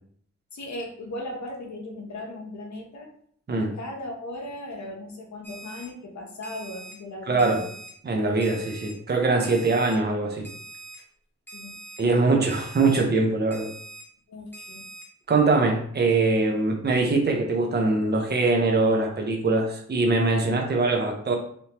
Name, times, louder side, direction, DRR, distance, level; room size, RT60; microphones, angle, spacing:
voice 1, 0.5-3.1 3.6-7.7 11.5-11.8 14.3-14.9, left 1 dB, 70° left, 1 dB, 0.9 m, -37 dB
Alarm, 5.4-5.9 6.4-6.9 7.4-7.9 8.4-8.9 9.4-9.9 10.4-11.0 11.5-12.0 12.5-13.0 13.5-14.0 14.5-15.0, right 2 dB, 5° left, 1.2 m, -43 dB
voice 2, 7.3-7.6 8.0-10.5 12.0-13.7 15.3-21.4, right 3 dB, 35° right, 2 dB, 0.7 m, -22 dB
3.4 x 2.8 x 2.9 m, 0.62 s
cardioid pair, 80°, 29 cm